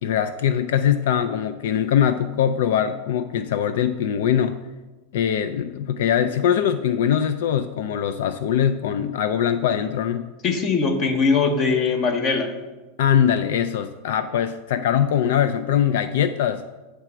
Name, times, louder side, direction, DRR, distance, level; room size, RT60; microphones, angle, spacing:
voice 1, 0.0-4.6 5.1-10.3 13.0-16.6, left 9 dB, 75° left, 11 dB, 0.3 m, -22 dB
voice 2, 10.4-12.5, left 4 dB, 30° left, 6 dB, 0.9 m, -21 dB
8.8 x 3.3 x 5.9 m, 1.2 s
supercardioid pair, 150°, 0 cm